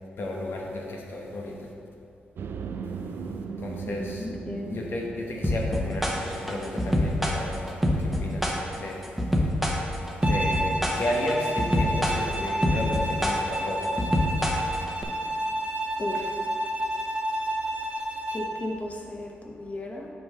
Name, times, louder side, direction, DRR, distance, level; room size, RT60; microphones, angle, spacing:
voice 1, 0.2-1.7 3.6-4.3 4.6-9.1 9.4-9.5 10.1-14.1, left 1 dB, 65° left, -1 dB, 1.0 m, -33 dB
sound 1, 2.4-7.6, right 5 dB, 65° right, 0.4 m, -39 dB
voice 2, 3.8-4.9 16.0-16.3 18.3-20.1, left 2 dB, 35° left, 0 dB, 0.9 m, -35 dB
sound 2, 5.4-15.0, equal, ahead, 1.0 m, -26 dB
Bowed string instrument, 10.2-18.6, right 1 dB, 40° right, 1.2 m, -30 dB
6.8 x 4.1 x 5.2 m, 2.5 s
supercardioid pair, 45°, 4 cm